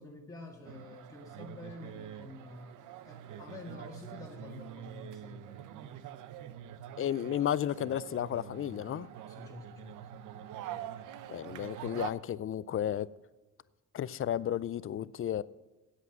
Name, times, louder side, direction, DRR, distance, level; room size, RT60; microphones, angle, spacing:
voice 1, 0.0-6.2 9.3-10.3 10.7-10.9, left 2 dB, 10° left, 1.9 m, -49 dB
sound 1, 0.6-12.1, right 11 dB, 90° right, 0.7 m, -45 dB
voice 2, 7.0-9.1 11.3-13.1 13.9-15.4, left 10 dB, 45° left, 0.5 m, -33 dB
9.8 x 8.3 x 7.3 m
cardioid pair, 90°, 30 cm